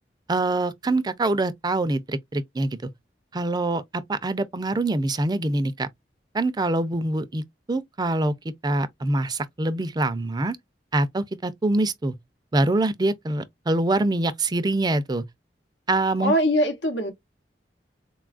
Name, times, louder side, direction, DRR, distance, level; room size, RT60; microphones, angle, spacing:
voice 1, 0.3-2.9 3.3-5.9 6.3-7.4 7.7-10.6 10.9-12.1 12.5-15.2 15.9-16.3, right 2 dB, 25° right, 0.4 m, -24 dB
voice 2, 16.2-17.1, equal, 80° left, 0.9 m, -22 dB
4.0 x 2.3 x 2.4 m
head